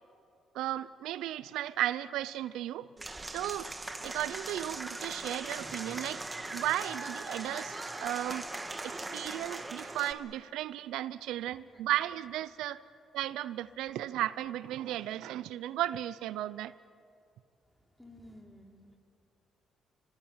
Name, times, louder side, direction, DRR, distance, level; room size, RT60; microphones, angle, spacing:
voice 1, 0.5-2.9 3.3-3.7 4.0-6.2 6.5-7.7 8.0-8.5 8.8-12.8 13.1-16.7, right 13 dB, 90° right, 16 dB, 0.6 m, -35 dB
Applause / Crowd, 3.0-10.1, right 2 dB, 20° right, 2.0 m, -40 dB
voice 2, 18.0-19.0, left 1 dB, 5° left, 2 dB, 4.1 m, -53 dB
26.5 x 21.0 x 8.8 m, 2.4 s
cardioid pair, 90°, 0 cm